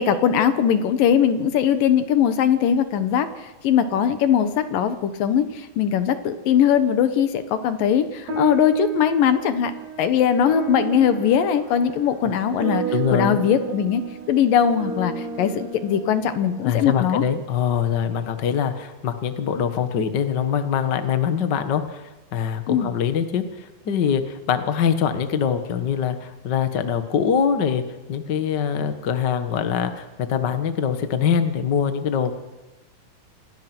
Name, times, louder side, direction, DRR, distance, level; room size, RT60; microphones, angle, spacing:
voice 1, 0.0-12.8 13.1-14.0 14.3-17.2 22.7-22.9, left 8 dB, 70° left, 10 dB, 2.9 m, -20 dB
sound 1, 8.3-17.0, right 7 dB, 50° right, 4.6 m, -32 dB
voice 2, 12.9-13.4 16.6-27.8 28.1-32.3, left 7 dB, 50° left, 8 dB, 1.3 m, -23 dB
28.0 x 20.0 x 6.2 m, 1.1 s
omnidirectional pair, 4.2 m